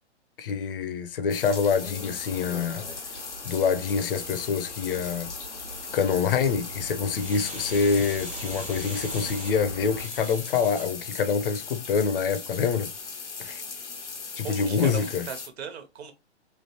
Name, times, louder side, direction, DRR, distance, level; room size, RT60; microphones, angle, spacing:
voice 1, 0.4-2.9 3.4-5.3 5.9-12.9 13.4-13.6 14.4-15.3, left 6 dB, 55° left, 0.5 m, -26 dB
sound 1, 1.3-15.5, left 5 dB, 90° left, 0.8 m, -38 dB
sound 2, 1.9-10.1, right 2 dB, 85° right, 1.0 m, -43 dB
sound 3, 7.1-10.9 11.5-11.6, equal, 5° right, 0.3 m, -41 dB
voice 2, 14.4-16.1, right 7 dB, 65° right, 0.8 m, -38 dB
3.1 x 2.5 x 2.8 m
figure-of-eight pair, 120°, 34 cm